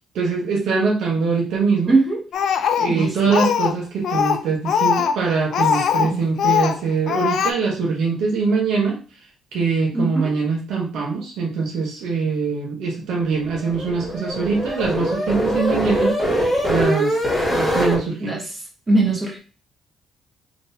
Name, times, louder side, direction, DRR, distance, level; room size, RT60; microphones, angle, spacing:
voice 1, 0.1-1.9 2.8-9.0 9.5-16.2 16.7-17.2 17.5-18.4, right 4 dB, 80° right, -1 dB, 1.0 m, -23 dB
voice 2, 1.9-2.2 2.9-3.2 6.0-6.2 9.9-10.3 18.2-18.5 18.9-19.4, right 2 dB, 30° right, -2 dB, 1.7 m, -20 dB
Speech, 2.3-3.8 4.0-6.1 6.4-6.8 7.1-7.5, left 7 dB, 70° left, 0.4 m, -20 dB
sound 1, 13.3-18.0, equal, 5° left, 1.7 m, -22 dB
3.7 x 2.9 x 2.6 m, 0.36 s
cardioid pair, 90°, 0 cm